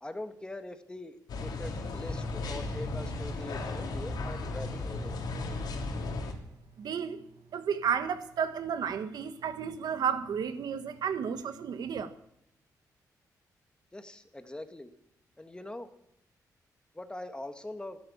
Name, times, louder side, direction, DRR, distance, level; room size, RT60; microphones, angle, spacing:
voice 1, 0.0-5.4 13.9-14.9 15.4-15.9 16.9-18.0, left 1 dB, 15° left, 1.6 m, -42 dB
sound 1, 1.3-6.3, left 2 dB, 80° left, 3.0 m, -35 dB
voice 2, 6.8-7.2 7.5-12.1, right 7 dB, 75° right, 1.3 m, -32 dB
13.0 x 12.0 x 8.7 m
cardioid pair, 95°, 7 cm